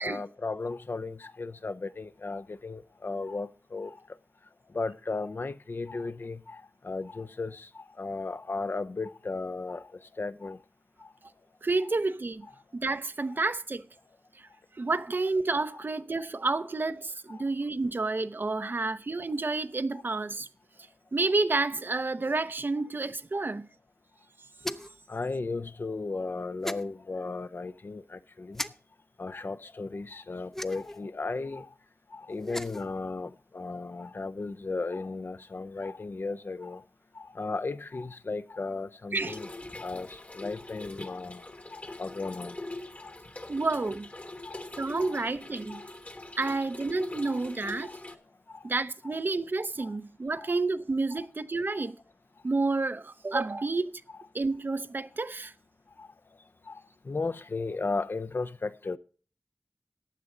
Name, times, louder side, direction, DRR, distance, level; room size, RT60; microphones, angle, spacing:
voice 1, 0.0-4.0 4.7-10.6 11.0-11.1 14.9-15.0 15.7-15.8 17.3-17.4 18.6-18.7 19.9-20.0 23.3-23.5 25.1-28.6 29.2-31.7 32.1-36.8 37.1-39.5 39.8-42.6 43.0-43.2 43.8-43.9 44.4-44.7 45.0-45.2 45.7-45.9 46.5-46.6 47.3-47.4 47.8-48.0 48.5-48.7 49.0-49.1 49.8-50.0 50.4-50.5 51.1-51.2 51.7-51.9 53.5-53.7 56.0-56.1 56.7-59.0, left 3 dB, 60° left, 0.6 m, -36 dB
voice 2, 11.6-12.5 12.7-13.8 14.8-20.5 21.1-23.7 39.1-39.4 43.5-44.1 44.8-45.8 46.4-47.9 48.6-52.0 52.4-54.0 54.3-55.5, right 3 dB, 55° right, 0.6 m, -30 dB
sound 1, 24.6-25.0 26.6-26.8 28.5-28.7 30.5-31.0 32.3-32.9, left 1 dB, 10° left, 0.6 m, -36 dB
Trickle dribble / Fill (with liquid), 39.2-48.2, left 2 dB, 35° left, 1.2 m, -43 dB
15.0 x 9.6 x 3.8 m
wide cardioid pair, 75°, 4 cm